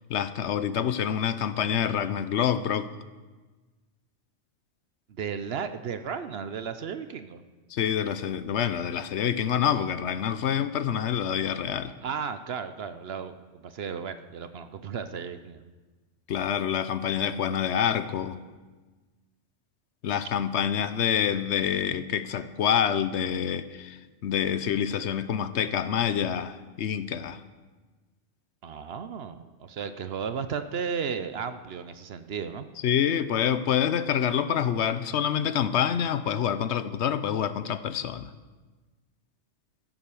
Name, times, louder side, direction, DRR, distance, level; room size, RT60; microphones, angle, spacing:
voice 1, 0.1-2.9 7.7-11.9 16.3-18.4 20.0-27.4 32.8-38.3, left 9 dB, 70° left, 13 dB, 0.9 m, -27 dB
voice 2, 5.1-7.4 12.0-15.7 28.6-32.7, right 6 dB, 60° right, 11 dB, 0.9 m, -34 dB
15.0 x 8.0 x 6.9 m, 1.3 s
omnidirectional pair, 1.3 m